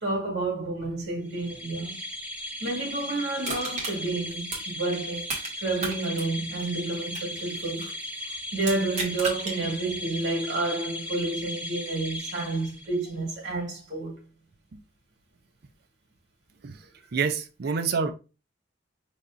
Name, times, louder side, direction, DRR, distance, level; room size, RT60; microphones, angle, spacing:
voice 1, 0.0-2.0 2.6-5.3 5.6-7.9 8.2-14.2, right 2 dB, 85° right, 2.0 m, -30 dB
sound 1, 1.3-13.1, left 1 dB, 5° right, 1.1 m, -37 dB
Crushing, 3.4-5.5 5.8-8.0 8.6-9.6 10.0-10.1, right 3 dB, 40° right, 1.7 m, -34 dB
voice 2, 17.1-18.1, right 5 dB, 60° right, 0.5 m, -27 dB
5.6 x 3.4 x 2.5 m
head